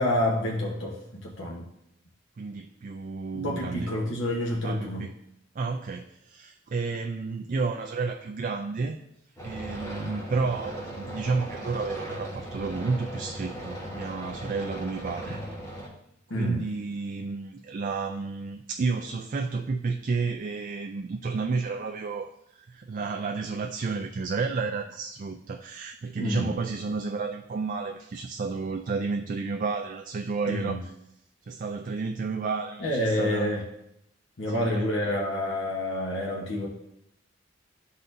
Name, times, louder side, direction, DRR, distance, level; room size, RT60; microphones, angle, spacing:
voice 1, 0.0-1.6 3.3-5.1 16.3-16.7 26.1-26.5 30.4-30.8 32.8-33.6 34.4-36.7, left 1 dB, 75° left, -3 dB, 1.0 m, -28 dB
voice 2, 2.4-3.9 4.6-5.1 5.6-9.0 9.4-15.4 16.3-30.9 31.5-33.5 34.5-34.9, right 4 dB, 45° right, 4 dB, 0.4 m, -31 dB
sound 1, 9.4-15.9, right 1 dB, 15° left, 1.3 m, -38 dB
12.0 x 4.1 x 2.6 m, 0.79 s
head